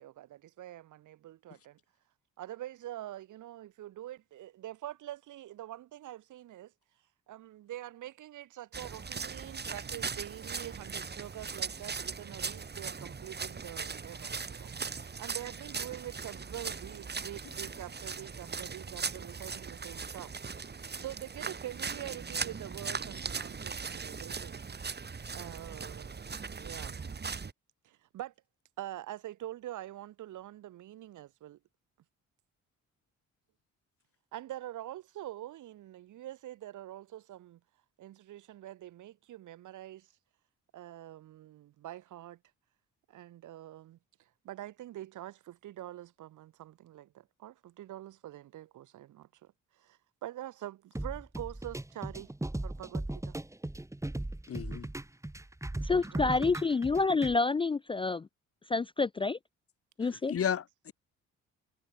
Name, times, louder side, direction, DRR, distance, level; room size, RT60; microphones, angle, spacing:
voice 1, 0.0-1.8 2.4-6.7 7.3-24.6 25.3-27.0 27.8-28.3 28.8-31.6 34.3-37.6 38.0-40.1 40.7-42.4 43.1-44.0 44.4-52.3 52.6-53.4 55.8-56.6, right 13 dB, 80° right, 3.5 m, -45 dB
sound 1, 8.7-27.5, right 5 dB, 35° right, 4.0 m, -39 dB
sound 2, 50.9-57.3, right 1 dB, 10° right, 3.5 m, -37 dB
voice 2, 54.5-54.9 60.3-60.9, left 8 dB, 50° left, 1.8 m, -32 dB
voice 3, 55.8-58.3 58.7-59.4 60.0-60.3, left 4 dB, 20° left, 0.4 m, -28 dB
cardioid pair, 90°, 30 cm